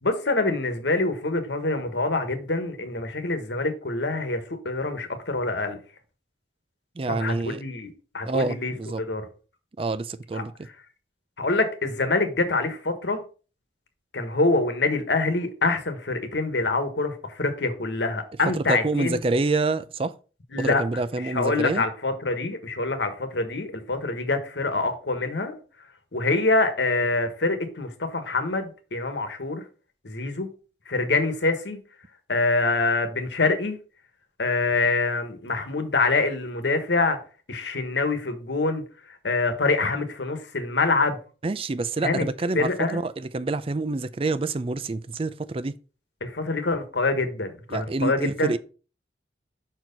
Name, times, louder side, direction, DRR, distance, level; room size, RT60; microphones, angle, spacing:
voice 1, 0.0-5.8 7.1-9.3 10.3-10.4 11.4-13.2 14.1-19.2 20.5-20.8 21.2-25.6 26.1-29.6 30.0-30.5 30.9-31.8 32.3-33.8 34.4-37.2 37.5-38.8 39.2-41.2 42.0-42.2 42.5-43.0 46.2-48.6, left 3 dB, 75° left, 1.3 m, -25 dB
voice 2, 7.0-7.6 8.2-9.0 9.8-10.7 18.5-20.1 20.6-21.8 41.4-45.7 47.7-48.6, right 3 dB, 30° right, 0.4 m, -27 dB
6.1 x 4.4 x 5.2 m
head